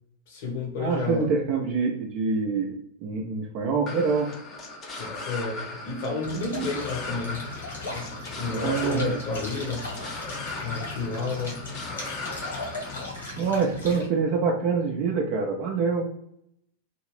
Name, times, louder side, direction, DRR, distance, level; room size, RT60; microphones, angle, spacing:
voice 1, 0.3-1.3 5.0-7.4 7.9-9.9 10.6-11.6, left 3 dB, 50° left, -1 dB, 0.9 m, -31 dB
voice 2, 0.8-2.7 3.0-4.3 8.5-9.2 13.4-16.0, right 4 dB, 40° right, 0 dB, 0.5 m, -25 dB
sound 1, 3.9-13.1, left 3 dB, 30° left, 0.6 m, -38 dB
sound 2, 6.2-14.0, left 2 dB, 65° left, 1.5 m, -37 dB
2.7 x 2.6 x 3.0 m, 0.75 s
figure-of-eight pair, 90°, 0 cm